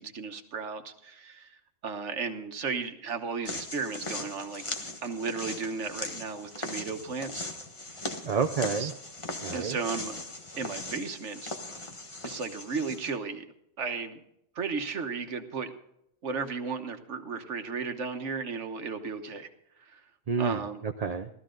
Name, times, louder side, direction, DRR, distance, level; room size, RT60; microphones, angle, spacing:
voice 1, 0.0-4.6 5.0-7.5 8.8-8.9 9.5-10.1 10.6-11.5 12.2-13.4 13.8-14.2 14.5-15.7 16.2-19.5 19.8-20.0 20.4-20.8, right 5 dB, 80° right, 7 dB, 1.5 m, -34 dB
sound 1, 3.5-13.1, left 2 dB, 25° left, 1.3 m, -39 dB
voice 2, 8.2-8.9 9.4-9.8 20.3-21.3, right 5 dB, 45° right, 6 dB, 0.6 m, -29 dB
15.5 x 13.5 x 3.8 m, 0.76 s
omnidirectional pair, 1.2 m